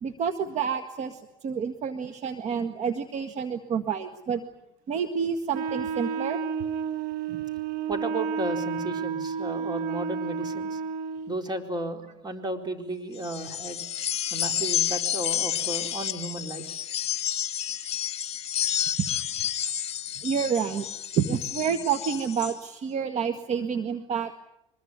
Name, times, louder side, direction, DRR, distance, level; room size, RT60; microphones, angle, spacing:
voice 1, 0.0-4.4 4.9-6.4 7.3-7.4 20.2-20.9 21.2-24.3, right 7 dB, 50° right, 8 dB, 1.8 m, -29 dB
Wind instrument woodwind instrument, 5.5-11.4, right 6 dB, 65° right, 1.4 m, -31 dB
voice 2, 7.9-10.8 11.3-13.8 14.3-16.9, right 2 dB, 30° right, 6 dB, 4.3 m, -34 dB
sound 1, 13.2-22.6, left 10 dB, 40° left, 1.3 m, -30 dB
24.5 x 21.0 x 9.5 m, 0.85 s
supercardioid pair, 85°, 15 cm